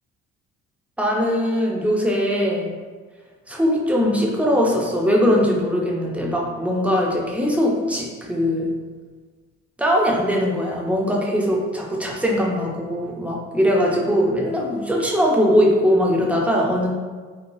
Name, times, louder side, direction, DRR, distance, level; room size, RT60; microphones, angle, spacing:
voice 1, 1.0-2.7 3.5-8.7 9.8-16.9, equal, 5° right, -2 dB, 0.5 m, -20 dB
3.1 x 2.2 x 2.6 m, 1.5 s
cardioid pair, 90°, 30 cm